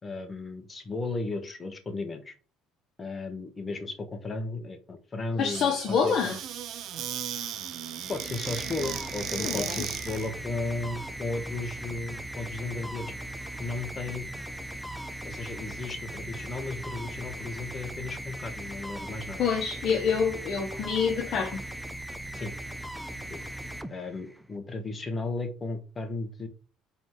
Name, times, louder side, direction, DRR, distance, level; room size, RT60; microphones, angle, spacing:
voice 1, 0.0-2.3 3.0-6.4 8.1-13.1 13.6-14.3 15.2-19.4 22.3-22.5 23.3-23.4 23.9-26.5, left 3 dB, 25° left, 1.5 m, -35 dB
voice 2, 5.3-6.4 9.4-9.8 19.4-21.6, left 6 dB, 55° left, 1.3 m, -27 dB
Squeak / Cupboard open or close, 5.4-10.3, right 10 dB, 60° right, 0.9 m, -36 dB
sound 1, 8.0-24.5, right 1 dB, ahead, 0.6 m, -39 dB
4.7 x 4.2 x 5.6 m
supercardioid pair, 100°, 0 cm